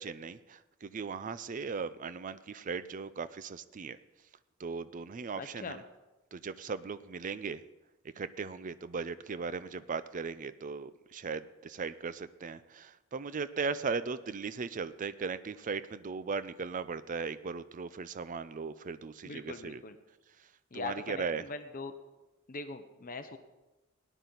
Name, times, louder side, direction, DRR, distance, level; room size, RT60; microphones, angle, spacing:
voice 1, 0.0-4.0 4.6-5.8 6.3-7.6 8.2-19.8 20.4-20.5 20.7-21.4, right 5 dB, 40° right, 15 dB, 0.4 m, -38 dB
voice 2, 5.4-5.8 19.2-19.9 20.7-21.9 22.5-23.4, left 3 dB, 40° left, 9 dB, 0.8 m, -41 dB
18.0 x 10.0 x 4.0 m, 1.1 s
head